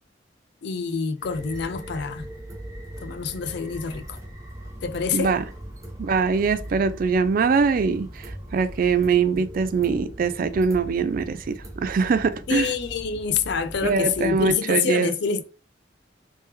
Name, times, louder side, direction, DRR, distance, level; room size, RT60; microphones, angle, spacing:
voice 1, 0.6-2.3 3.0-4.2 4.8-5.3 12.5-15.4, left 6 dB, 65° left, 0.4 m, -27 dB
sound 1, 1.2-14.5, right 1 dB, 15° right, 0.7 m, -40 dB
voice 2, 5.1-5.4 6.0-12.7 13.8-15.1, right 5 dB, 50° right, 0.3 m, -22 dB
3.3 x 3.0 x 3.2 m
head